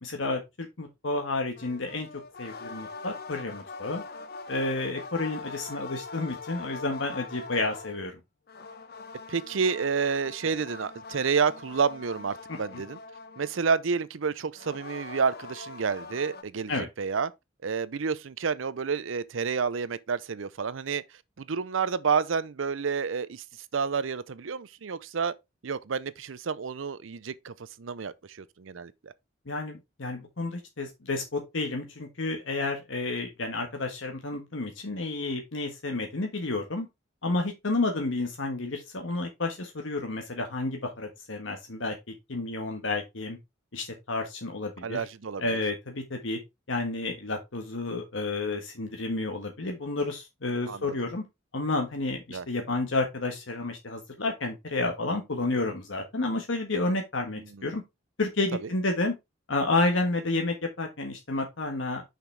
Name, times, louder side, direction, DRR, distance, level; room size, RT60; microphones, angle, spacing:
voice 1, 0.0-2.1 2.4-4.0 4.5-8.1 12.7-12.8 16.7-16.9 29.5-36.9 37.2-41.9 42.3-43.4 43.7-45.0 45.4-46.4 46.7-51.2 51.5-57.8 58.2-59.1 59.5-62.1, left 2 dB, 80° left, 1.4 m, -30 dB
sound 1, 1.6-8.0 8.5-13.9 14.5-16.4, left 4 dB, 55° left, 0.9 m, -43 dB
voice 2, 9.3-13.0 13.4-17.3 17.6-21.0 21.4-23.4 23.7-25.3 25.6-29.1 44.8-45.6 50.7-50.9 52.3-52.5 57.5-57.8 58.6-58.7, right 5 dB, 85° right, 0.6 m, -29 dB
5.9 x 5.8 x 3.4 m
head